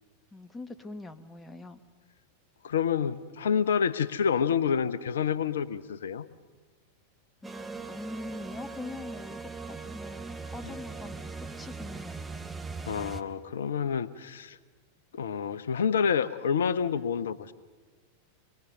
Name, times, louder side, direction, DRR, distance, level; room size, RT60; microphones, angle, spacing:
voice 1, 0.3-1.8 7.4-12.2, left 2 dB, 10° left, 9 dB, 1.2 m, -43 dB
voice 2, 2.6-6.2 10.6-10.7 12.8-14.6 15.1-17.5, left 7 dB, 65° left, 15 dB, 0.8 m, -28 dB
sound 1, 7.4-13.2, right 4 dB, 10° right, 1.1 m, -40 dB
26.0 x 21.5 x 6.7 m, 1.4 s
figure-of-eight pair, 90°, 0 cm